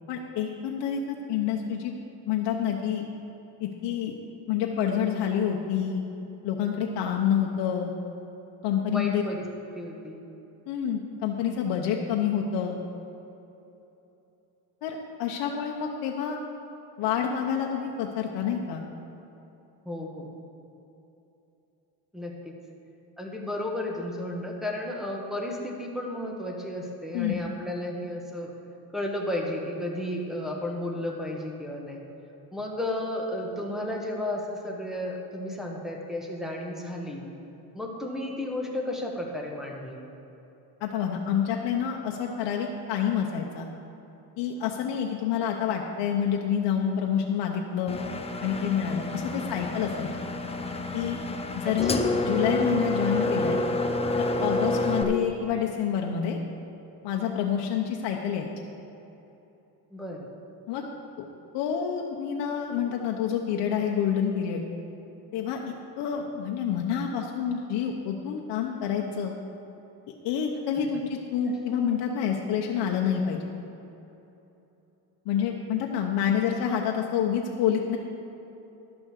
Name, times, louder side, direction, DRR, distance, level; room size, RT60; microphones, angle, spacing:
voice 1, 0.1-1.0 1.3-2.0 2.3-3.1 3.6-4.2 4.5-6.0 6.4-7.9 8.6-9.2 10.7-12.8 14.8-16.4 17.0-18.8 27.1-27.3 40.8-43.7 44.4-48.0 48.4-50.1 50.9-51.2 51.6-53.6 54.2-56.4 57.0-58.5 60.7-60.8 61.2-61.3 61.5-64.6 65.3-65.6 66.0-69.3 70.2-73.5 75.3-78.0, left 8 dB, 70° left, 1 dB, 0.9 m, -28 dB
voice 2, 8.9-9.4 9.7-10.3 19.8-20.3 22.1-22.5 23.2-28.5 28.9-32.0 32.5-37.3 37.7-40.0 49.3-49.7 51.6-52.0 59.9-60.2, left 1 dB, ahead, -2 dB, 1.3 m, -33 dB
Engine, 47.9-55.0, left 2 dB, 15° left, 0.6 m, -28 dB
11.5 x 6.2 x 6.5 m, 3.0 s
cardioid pair, 125°, 42 cm